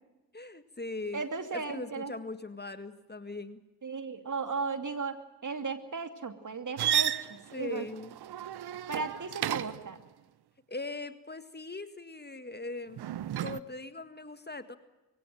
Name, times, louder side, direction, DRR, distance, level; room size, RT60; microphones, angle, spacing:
voice 1, 0.3-1.2 1.5-3.6 7.5-8.1 10.7-13.0 13.4-14.8, left 2 dB, 25° left, 11 dB, 1.8 m, -40 dB
voice 2, 1.1-2.1 3.8-5.2 5.4-7.9 8.9-10.0, right 4 dB, 45° right, 8 dB, 2.7 m, -36 dB
sound 1, 6.8-9.9 12.9-13.6, right 11 dB, 65° right, 0.9 m, -32 dB
22.0 x 17.0 x 9.2 m, 1.0 s
supercardioid pair, 40°, 41 cm